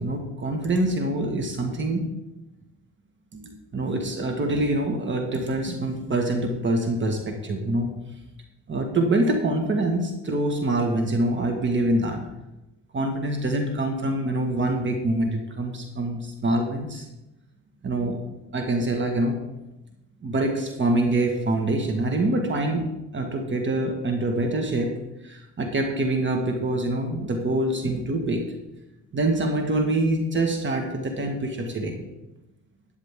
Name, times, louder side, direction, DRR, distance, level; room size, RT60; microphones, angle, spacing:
voice 1, 0.0-2.1 3.3-7.9 8.7-12.2 12.9-17.1 17.8-18.2 18.5-19.4 20.2-22.9 23.1-24.9 25.2-28.4 29.1-32.0, right 2 dB, 40° right, 3 dB, 1.7 m, -25 dB
12.5 x 9.7 x 3.7 m, 0.94 s
cardioid pair, 90°, 30 cm